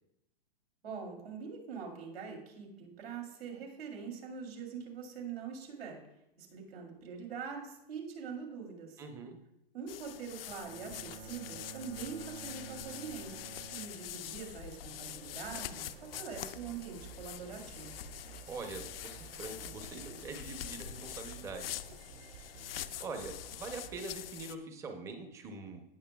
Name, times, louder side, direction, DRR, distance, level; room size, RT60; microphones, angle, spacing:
voice 1, 0.8-6.0 6.4-9.0 9.7-13.3 13.7-15.9 16.2-18.0, right 6 dB, 90° right, 1 dB, 3.1 m, -43 dB
voice 2, 9.0-9.4 18.5-21.8 23.0-25.8, right 3 dB, 10° right, 5 dB, 0.6 m, -43 dB
sound 1, 9.9-24.6, left 12 dB, 75° left, 0.6 m, -45 dB
Bowed string instrument, 10.6-14.7, right 10 dB, 75° right, 0.5 m, -50 dB
sound 2, 14.8-24.0, right 8 dB, 45° right, 1.2 m, -53 dB
16.5 x 6.5 x 2.3 m, 0.86 s
hypercardioid pair, 160°, 30 cm